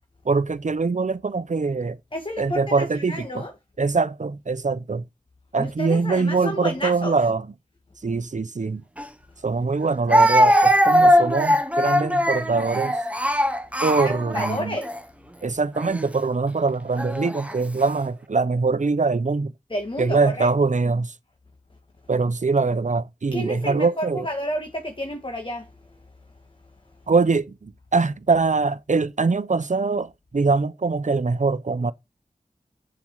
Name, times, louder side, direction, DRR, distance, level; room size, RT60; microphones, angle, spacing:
voice 1, 0.2-2.0 2.4-3.5 3.8-5.0 5.5-7.5 8.0-8.8 9.4-13.0 13.8-14.8 15.4-19.5 20.0-21.1 22.1-24.3 27.1-31.9, right 4 dB, 55° right, 0.9 m, -23 dB
voice 2, 2.1-3.5 5.6-7.2 14.3-14.9 19.7-20.5 23.3-25.7, equal, 35° left, 1.9 m, -30 dB
Speech, 9.0-9.1 10.1-15.0 15.8-16.0 17.0-17.5, equal, 10° right, 1.1 m, -20 dB
7.9 x 7.2 x 4.7 m
wide cardioid pair, 50°, 15 cm